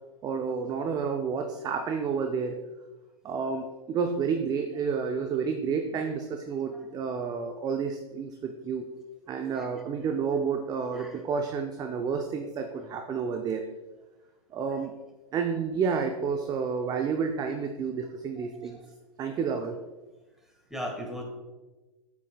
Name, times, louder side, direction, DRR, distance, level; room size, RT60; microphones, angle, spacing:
voice 1, 0.2-2.6 3.2-8.8 9.3-13.6 14.5-15.0 15.3-18.8 19.2-19.8, right 6 dB, 20° right, 6 dB, 0.5 m, -30 dB
voice 2, 18.4-18.9 19.2-19.4 20.4-21.2, equal, ahead, 0 dB, 1.6 m, -40 dB
8.8 x 7.0 x 2.3 m, 1.2 s
hypercardioid pair, 110°, 19 cm